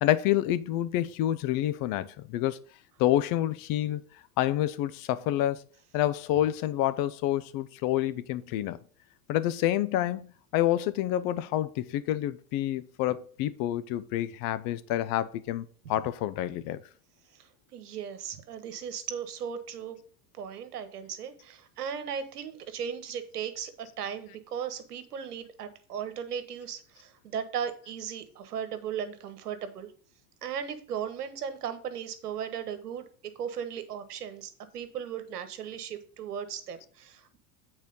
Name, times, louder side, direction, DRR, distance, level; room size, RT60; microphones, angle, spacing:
voice 1, 0.0-2.6 3.0-4.0 4.4-5.6 5.9-8.8 9.3-16.8, left 13 dB, 45° left, 0.8 m, -28 dB
voice 2, 17.3-20.0 20.4-29.9 30.4-33.1 33.4-37.4, right 8 dB, 80° right, 1.3 m, -37 dB
8.4 x 4.4 x 5.3 m
hypercardioid pair, 90°, 45 cm